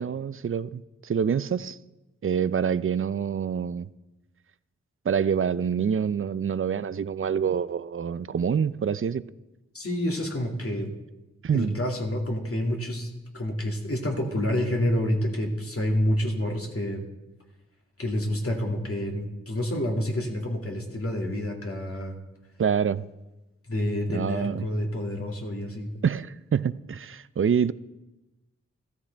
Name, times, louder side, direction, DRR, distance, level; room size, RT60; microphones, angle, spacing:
voice 1, 0.0-1.8 2.2-3.9 5.1-9.3 11.4-11.8 22.6-23.0 24.1-24.6 26.0-27.7, right 7 dB, 45° right, 0.4 m, -26 dB
voice 2, 9.7-10.9 11.5-13.1 13.3-17.0 18.0-22.2 23.7-25.9, left 1 dB, 50° left, 2.4 m, -28 dB
14.5 x 13.0 x 3.4 m
wide cardioid pair, 50°, 29 cm